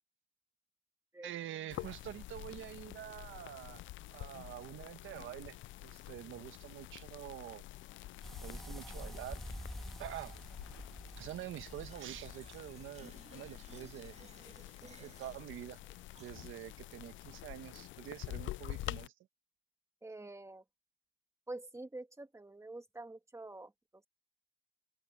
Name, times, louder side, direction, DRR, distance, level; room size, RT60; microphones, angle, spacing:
voice 1, 1.2-7.6 8.4-9.4 10.0-10.4 11.2-14.2 15.0-15.8 16.2-19.1, right 12 dB, 80° right, 1.4 m, -46 dB
sound 1, 1.7-19.1, left 16 dB, 75° left, 0.4 m, -48 dB
sound 2, 8.2-13.6, equal, ahead, 2.9 m, -48 dB
Fill (with liquid), 11.7-16.7, right 4 dB, 35° right, 2.0 m, -59 dB
voice 2, 20.0-20.6 21.5-24.1, right 2 dB, 15° right, 2.8 m, -47 dB
open air
cardioid pair, 90°, 20 cm